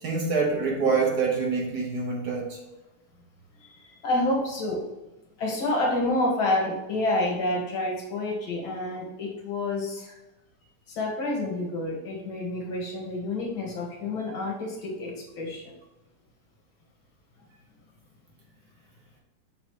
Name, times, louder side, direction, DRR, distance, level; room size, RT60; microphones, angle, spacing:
voice 1, 0.0-2.6, right 4 dB, 50° right, -1 dB, 1.7 m, -26 dB
voice 2, 3.6-4.8 5.4-10.1 10.9-15.7, left 2 dB, 65° left, -2 dB, 2.4 m, -28 dB
6.3 x 6.3 x 3.2 m, 1.0 s
omnidirectional pair, 2.4 m